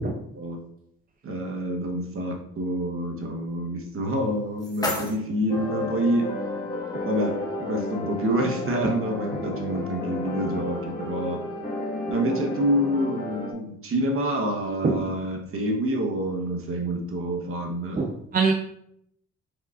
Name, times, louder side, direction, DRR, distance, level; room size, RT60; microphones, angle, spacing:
voice 1, 1.2-6.3 7.0-11.4 12.1-18.0, right 1 dB, 45° right, 2 dB, 1.0 m, -27 dB
sound 1, 4.1-6.1, left 1 dB, 15° left, 1.1 m, -34 dB
sound 2, 5.5-13.5, left 2 dB, 30° left, 1.7 m, -32 dB
voice 2, 18.0-18.5, right 4 dB, 30° right, 3 dB, 0.5 m, -23 dB
4.9 x 3.8 x 2.5 m, 0.73 s
cardioid pair, 90°, 30 cm